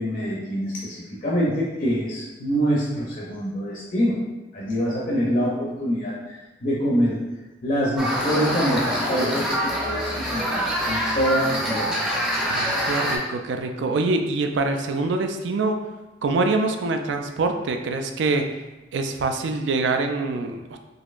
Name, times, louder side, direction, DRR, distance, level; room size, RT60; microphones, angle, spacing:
voice 1, 0.0-4.2 4.5-6.1 6.6-7.2 7.6-11.9, equal, 45° left, -5 dB, 0.6 m, -25 dB
sound 1, 8.0-13.2, equal, 5° right, 0.5 m, -25 dB
voice 2, 12.5-15.8 16.2-18.5 18.9-20.8, right 3 dB, 75° right, 6 dB, 0.4 m, -25 dB
4.0 x 2.8 x 2.4 m, 1.1 s
head